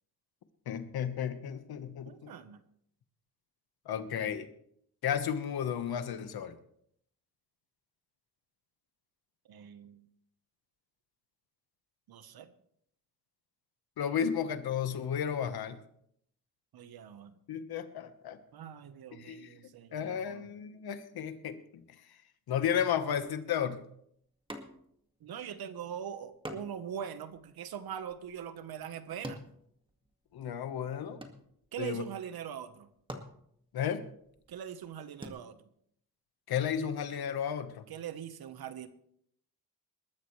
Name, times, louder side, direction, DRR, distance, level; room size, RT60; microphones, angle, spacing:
voice 1, 0.7-2.3 3.8-4.5 5.0-6.5 14.0-15.8 17.5-18.4 19.1-19.5 19.9-21.8 22.5-23.8 30.3-31.2 31.8-32.0 33.7-34.0 36.5-37.8, left 8 dB, 85° left, 10 dB, 1.3 m, -33 dB
voice 2, 2.0-2.6 9.5-10.1 12.1-12.5 16.7-17.3 18.5-20.5 25.2-29.4 31.7-32.9 34.5-35.6 37.9-38.9, right 9 dB, 80° right, 11 dB, 1.2 m, -42 dB
sound 1, 24.5-25.1 25.4-25.5 26.4-30.4 30.7-31.9 32.6-32.7 33.0-35.3, equal, 15° right, 2.0 m, -47 dB
20.5 x 13.0 x 3.3 m, 0.70 s
cardioid pair, 90°, 36 cm